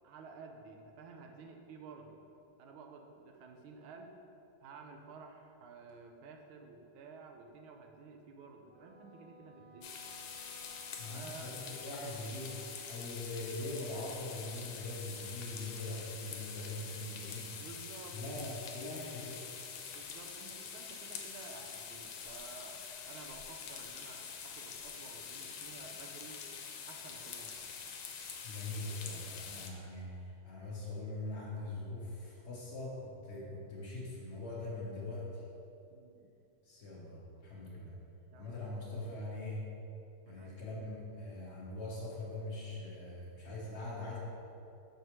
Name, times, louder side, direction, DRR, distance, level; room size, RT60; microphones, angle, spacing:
voice 1, 0.0-2.2 2.6-4.2 4.6-9.9 11.1-11.8 17.6-18.2 19.9-26.4 26.9-27.7 35.9-36.3 38.3-39.3 40.2-40.6, right 4 dB, 80° right, 3 dB, 1.4 m, -53 dB
Wind instrument woodwind instrument, 8.7-13.2, left 2 dB, 5° left, 0.6 m, -59 dB
sound 1, 9.8-29.7, left 6 dB, 85° left, 1.5 m, -45 dB
voice 2, 11.0-17.5 18.1-19.4 28.4-35.4 36.6-38.0 38.4-39.7 40.3-44.2, left 2 dB, 55° left, -5 dB, 0.7 m, -42 dB
6.1 x 5.4 x 2.9 m, 2.7 s
omnidirectional pair, 2.3 m